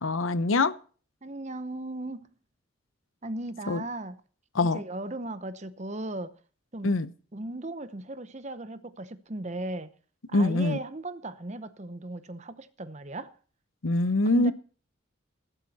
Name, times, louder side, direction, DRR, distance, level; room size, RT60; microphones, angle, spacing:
voice 1, 0.0-0.7 3.7-3.8 4.5-4.8 6.8-7.1 10.3-10.8 13.8-14.5, left 2 dB, 80° left, 0.9 m, -24 dB
voice 2, 1.2-2.3 3.2-4.2 4.6-6.4 6.7-6.9 7.3-9.9 10.3-13.4 14.3-14.5, right 2 dB, 35° right, 0.9 m, -37 dB
14.0 x 12.0 x 4.2 m
head